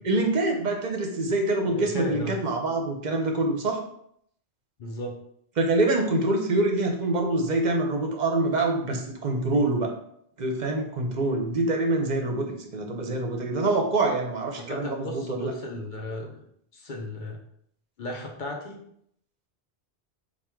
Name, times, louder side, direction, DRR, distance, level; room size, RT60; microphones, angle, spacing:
voice 1, 0.0-3.8 5.6-9.9 10.4-15.5, right 2 dB, 50° right, 3 dB, 0.7 m, -25 dB
voice 2, 1.7-2.4 4.8-5.2 14.6-16.4 16.7-17.4 18.0-18.8, left 1 dB, 55° left, 1 dB, 0.7 m, -35 dB
3.5 x 2.2 x 4.4 m, 0.70 s
omnidirectional pair, 1.0 m